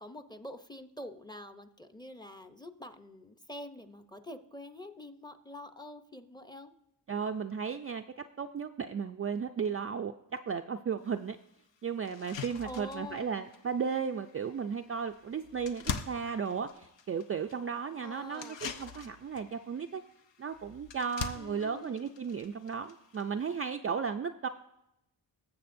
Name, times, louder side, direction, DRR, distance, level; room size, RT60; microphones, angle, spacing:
voice 1, 0.0-6.7 12.6-13.5 18.0-18.6 21.3-22.1, left 1 dB, 10° left, 8 dB, 0.7 m, -46 dB
voice 2, 7.1-11.4 11.8-20.0 20.4-24.5, right 6 dB, 35° right, 5 dB, 0.4 m, -35 dB
sound 1, 11.0-11.1 11.6-11.7 12.1-23.7, left 6 dB, 70° left, 0.8 m, -44 dB
20.0 x 7.1 x 2.6 m, 0.85 s
cardioid pair, 80°, 45 cm